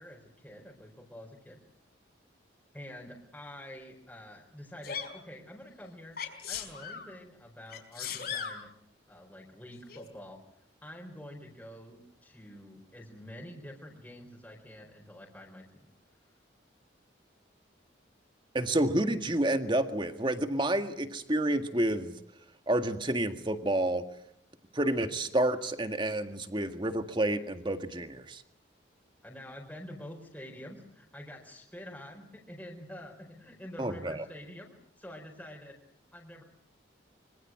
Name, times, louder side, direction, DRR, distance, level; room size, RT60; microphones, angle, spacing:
voice 1, 0.0-1.6 2.7-6.2 6.5-8.7 9.1-10.4 10.8-15.9 29.2-35.8 36.1-36.4, left 1 dB, 10° left, -1 dB, 4.6 m, -47 dB
Sneeze, 4.8-5.1 6.2-7.0 7.7-8.6 9.9-10.0, left 7 dB, 55° left, 4.9 m, -37 dB
voice 2, 18.5-22.1 22.7-24.0 24.7-28.4 33.8-34.2, right 1 dB, 25° right, 7 dB, 1.9 m, -29 dB
25.5 x 25.0 x 7.7 m, 0.71 s
head